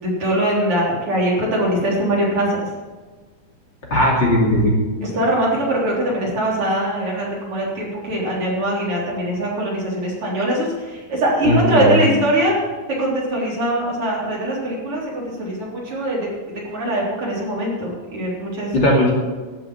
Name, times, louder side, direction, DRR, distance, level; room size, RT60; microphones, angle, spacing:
voice 1, 0.0-2.7 5.0-12.5 13.0-18.7, right 1 dB, 40° right, -4 dB, 4.3 m, -22 dB
voice 2, 3.9-4.8 11.4-12.0 18.7-19.1, equal, 35° left, -3 dB, 2.8 m, -17 dB
13.5 x 7.7 x 8.5 m, 1.4 s
omnidirectional pair, 4.1 m